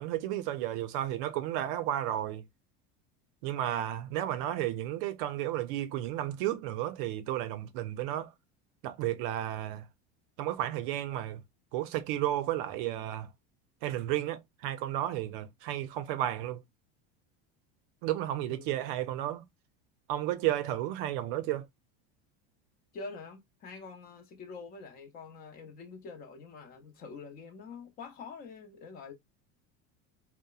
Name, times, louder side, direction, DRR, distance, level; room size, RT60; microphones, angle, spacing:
voice 1, 0.0-2.4 3.4-8.3 8.8-9.8 10.4-11.4 11.7-13.3 13.8-16.6 18.0-19.4 20.1-21.6, right 13 dB, 65° right, 0.5 m, -32 dB
voice 2, 18.5-18.8 22.9-29.1, left 4 dB, 30° left, 0.6 m, -46 dB
2.8 x 2.0 x 2.3 m
cardioid pair, 160°, 29 cm